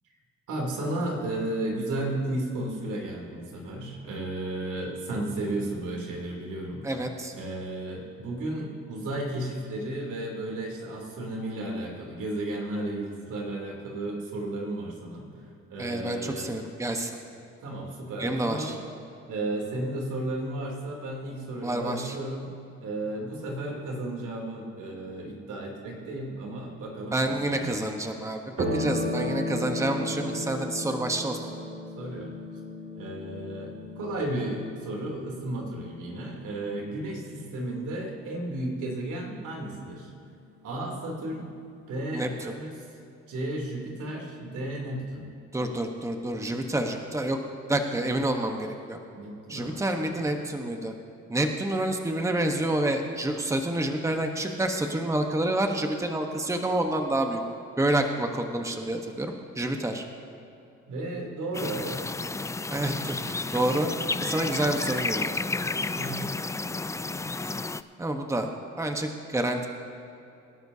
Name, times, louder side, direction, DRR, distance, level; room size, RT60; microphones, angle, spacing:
voice 1, 0.5-6.8 7.3-15.3 15.7-16.5 17.6-18.8 19.3-22.5 22.8-27.8 28.6-29.3 32.0-32.3 32.9-40.1 40.6-41.4 41.9-42.7 43.3-45.3 49.1-50.3 60.9-62.0 65.9-66.2, right 1 dB, 85° right, -1 dB, 3.2 m, -33 dB
voice 2, 6.8-7.3 15.8-17.2 18.2-18.8 21.6-22.2 27.1-28.4 28.7-31.4 42.1-42.3 45.5-47.4 47.7-49.0 49.5-50.9 51.3-57.4 57.8-60.0 62.7-63.9 64.2-65.4 68.0-68.5 68.8-69.7, right 1 dB, 10° right, 4 dB, 1.1 m, -28 dB
sound 1, 28.6-37.4, left 1 dB, 45° right, 2.7 m, -35 dB
sound 2, 61.5-67.8, left 3 dB, 10° left, 0.3 m, -31 dB
25.5 x 11.5 x 2.8 m, 2.7 s
cardioid pair, 90°, 30 cm